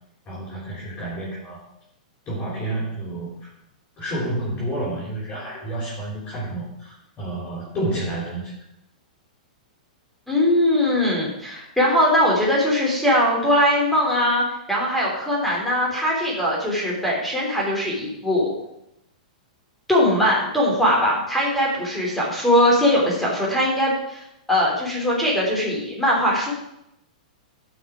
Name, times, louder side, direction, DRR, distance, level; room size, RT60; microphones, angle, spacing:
voice 1, 0.3-1.6 2.3-3.5 4.0-8.6, right 1 dB, 25° left, -7 dB, 4.4 m, -30 dB
voice 2, 10.3-18.5 19.9-24.2 24.5-26.5, equal, 5° left, -4 dB, 3.4 m, -21 dB
12.0 x 6.0 x 4.9 m, 0.81 s
hypercardioid pair, 130°, 4 cm